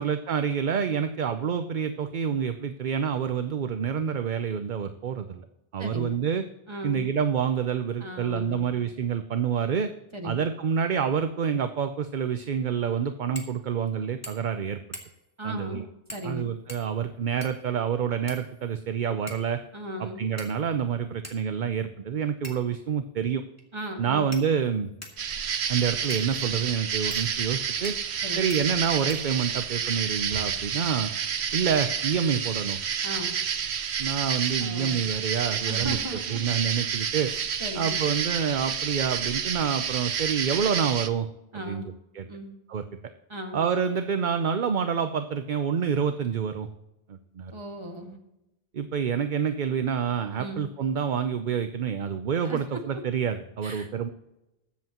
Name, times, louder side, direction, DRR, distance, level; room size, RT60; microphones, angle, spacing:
voice 1, 0.0-5.4 5.7-6.4 6.8-9.9 10.2-14.8 15.4-15.8 16.2-19.6 20.0-23.4 24.0-24.9 25.7-28.0 28.4-31.1 31.5-32.8 34.0-37.3 37.8-41.3 41.5-41.8 42.1-42.3 42.7-42.8 43.5-46.7 47.1-47.5 48.7-54.1, right 7 dB, 50° right, 9 dB, 0.7 m, -27 dB
voice 2, 5.8-6.2 6.7-7.1 8.0-8.8 10.1-10.4 15.4-16.5 19.7-20.3 23.7-24.4 28.2-28.5 33.0-33.4 34.6-35.1 35.7-36.4 37.3-38.0 41.5-41.9 42.3-42.6 43.3-43.6 47.5-48.2 50.4-50.6 52.4-52.6 53.6-53.9, equal, 25° right, 2 dB, 1.9 m, -37 dB
sound 1, 13.3-13.6 13.9-14.0 14.2-14.6 14.9-15.3 16.1-16.3 16.7-17.7 18.3-18.9 19.3-19.5 20.4-20.8 21.2-21.4 22.4-22.8 23.6-23.7 24.3-25.2 26.1-26.3 27.1-27.3 27.8-28.2 28.5-28.6 29.1-29.7, left 1 dB, 15° left, 2.1 m, -43 dB
sound 2, 25.2-41.1, right 7 dB, 80° right, 1.1 m, -30 dB
21.0 x 7.8 x 3.0 m, 0.91 s
omnidirectional pair, 1.1 m